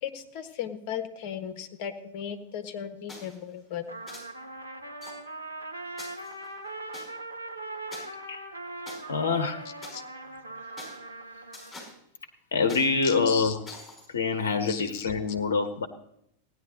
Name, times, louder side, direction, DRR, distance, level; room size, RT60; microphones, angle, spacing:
voice 1, 0.0-3.9 9.9-10.0 13.0-13.5 14.7-15.1, left 9 dB, 45° left, 9 dB, 1.3 m, -36 dB
sound 1, 3.1-3.4 4.1-4.2 5.0-5.1 6.0-7.1 7.9-8.0 8.9-9.0 9.8-10.0 10.8-11.0 11.5-11.9 12.7-12.9 13.6-14.1, left 2 dB, 5° left, 5.2 m, -44 dB
Trumpet, 3.9-11.8, right 2 dB, 80° right, 1.2 m, -40 dB
voice 2, 9.1-9.7 12.5-13.6 14.1-15.9, left 4 dB, 65° left, 9 dB, 1.1 m, -26 dB
16.0 x 10.0 x 3.9 m, 0.75 s
figure-of-eight pair, 90°, 0 cm